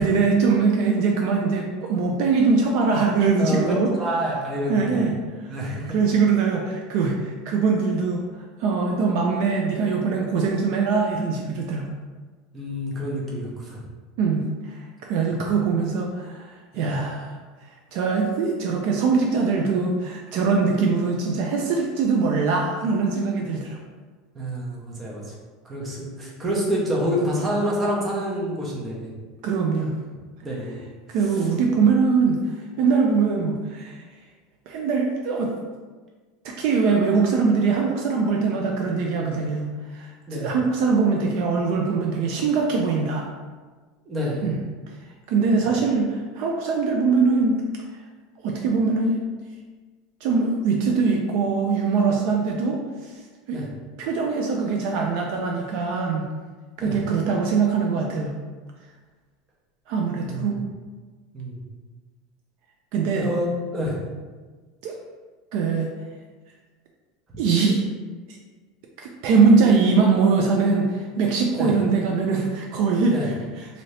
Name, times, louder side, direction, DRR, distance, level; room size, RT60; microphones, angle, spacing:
voice 1, 0.0-3.9 4.7-5.1 5.5-8.2 8.6-11.9 14.2-14.8 15.1-17.4 17.9-23.8 29.4-30.0 31.1-32.4 32.8-34.0 34.7-35.5 36.4-43.3 44.4-44.6 45.3-47.6 48.4-49.2 50.2-52.8 53.5-53.6 54.0-56.2 56.8-58.4 59.9-60.6 62.9-63.3 64.8-64.9 65.5-65.9 67.4-67.8 69.0-73.7, right 4 dB, 55° right, 0 dB, 0.3 m, -22 dB
voice 2, 4.0-5.0 5.5-5.9 12.5-13.8 15.3-15.4 16.7-16.9 24.3-25.3 25.6-29.1 30.4-30.8 40.3-40.5 44.1-44.5 53.5-53.7 56.8-57.0 60.3-60.6 61.3-61.6 63.2-64.0 71.5-71.7 73.1-73.3, equal, 15° right, -3 dB, 0.6 m, -27 dB
2.7 x 2.7 x 3.2 m, 1.4 s
supercardioid pair, 165°, 0 cm